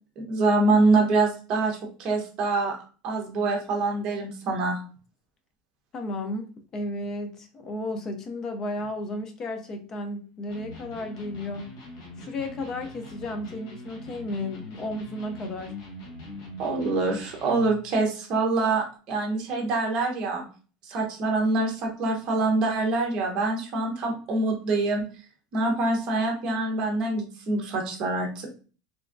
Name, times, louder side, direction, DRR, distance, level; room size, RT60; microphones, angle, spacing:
voice 1, 0.2-2.8 3.0-4.8 16.6-20.4 20.9-25.0 25.5-28.5, right 3 dB, 40° right, 1.0 m, -25 dB
voice 2, 5.9-11.7 12.2-15.8, left 1 dB, 25° left, 0.5 m, -33 dB
Electric guitar, 10.5-17.8, left 1 dB, 70° left, 1.2 m, -43 dB
3.4 x 3.0 x 2.6 m
cardioid pair, 170°, 2 cm